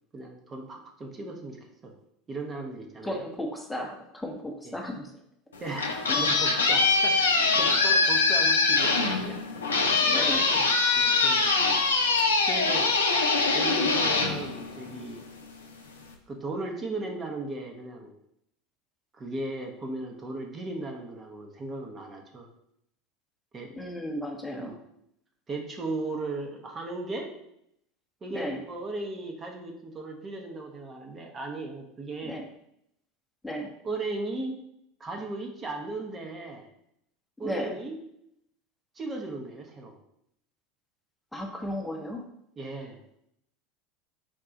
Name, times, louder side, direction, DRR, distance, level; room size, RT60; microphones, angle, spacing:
voice 1, 0.1-1.9 2.3-3.3 4.6-4.8 5.6-9.4 10.5-10.6 10.9-11.5 12.5-12.9 13.5-15.2 16.3-18.1 19.1-22.5 23.5-23.7 24.5-24.8 25.5-27.3 28.2-32.4 33.8-34.6 35.0-36.7 37.4-38.0 38.9-40.0 42.6-43.0, right 2 dB, 30° right, 2 dB, 0.7 m, -37 dB
voice 2, 3.0-5.1 6.1-6.3 10.0-10.5 23.8-24.8 28.3-28.6 32.2-32.5 33.4-33.7 37.4-37.8 41.3-42.2, equal, 5° left, 1 dB, 0.7 m, -34 dB
sound 1, 5.5-15.2, left 3 dB, 85° left, 0.4 m, -23 dB
3.6 x 2.3 x 3.9 m, 0.77 s
hypercardioid pair, 75°, 0 cm